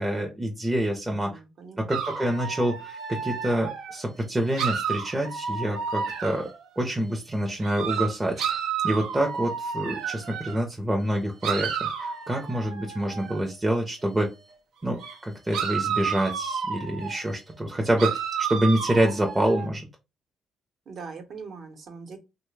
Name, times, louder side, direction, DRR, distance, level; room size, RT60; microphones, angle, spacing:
voice 1, 0.0-1.4 1.8-6.5 6.8-8.6 8.8-14.3 14.8-18.1 18.4-19.9, right 1 dB, 15° right, 0.6 m, -27 dB
voice 2, 1.1-2.0 20.9-22.2, right 5 dB, 60° right, 0.9 m, -42 dB
sound 1, 1.9-4.0 4.5-6.6 7.6-10.6 11.4-13.4 15.0-15.2 15.5-17.2 18.0-19.7, right 7 dB, 85° right, 0.6 m, -31 dB
3.0 x 2.1 x 3.1 m
cardioid pair, 90°, 0 cm